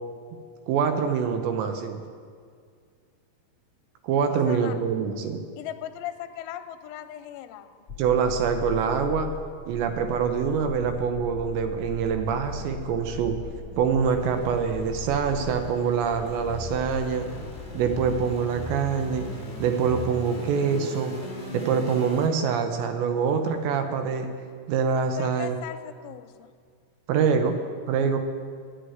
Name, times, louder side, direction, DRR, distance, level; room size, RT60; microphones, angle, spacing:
voice 1, 0.7-2.0 4.0-5.4 8.0-9.3 9.7-13.4 13.8-17.3 17.7-19.2 19.6-21.1 21.5-24.3 24.7-25.6 27.1-27.6 27.9-28.2, right 6 dB, 80° right, 7 dB, 2.7 m, -25 dB
voice 2, 4.3-4.7 5.6-7.8 25.2-26.5, left 12 dB, 80° left, 7 dB, 2.9 m, -38 dB
sound 1, 7.9-22.3, left 3 dB, 40° left, 0.9 m, -38 dB
sound 2, 10.6-16.8, right 1 dB, 60° right, 2.5 m, -42 dB
9.7 x 8.5 x 9.3 m, 2.1 s
omnidirectional pair, 5.7 m